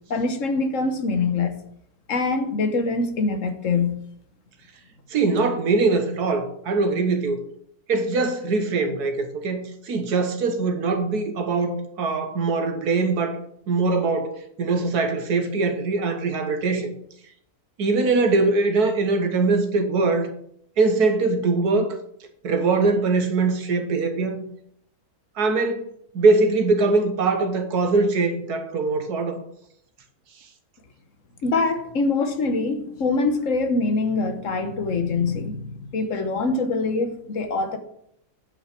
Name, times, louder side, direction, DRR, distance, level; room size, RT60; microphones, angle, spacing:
voice 1, 0.1-1.6 2.1-4.0 31.4-37.8, left 3 dB, 60° left, 1.4 m, -24 dB
voice 2, 5.1-7.4 7.9-13.4 13.7-16.9 17.8-20.3 20.8-21.9 22.4-24.4 25.4-25.9 26.1-29.4, right 3 dB, 85° right, 1.7 m, -22 dB
9.4 x 5.8 x 6.0 m
omnidirectional pair, 1.6 m